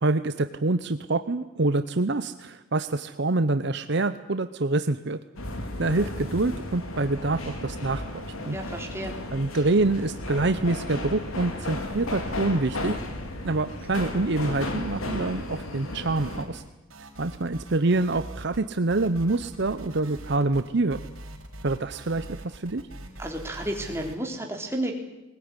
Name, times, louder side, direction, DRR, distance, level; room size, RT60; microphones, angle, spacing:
voice 1, 0.0-5.2 5.8-8.0 8.5-8.6 9.3-13.0 13.4-16.6 17.2-21.0 21.6-22.8, right 2 dB, 55° right, 11 dB, 0.8 m, -26 dB
sound 1, 5.4-16.4, left 1 dB, 85° left, 3.5 m, -34 dB
voice 2, 8.5-9.1 23.2-24.9, right 1 dB, 10° right, 2 dB, 3.5 m, -32 dB
sound 2, 16.2-16.7 16.9-18.6 18.9-24.2, right 1 dB, 80° right, 5.3 m, -42 dB
20.5 x 20.5 x 9.8 m, 1.0 s
head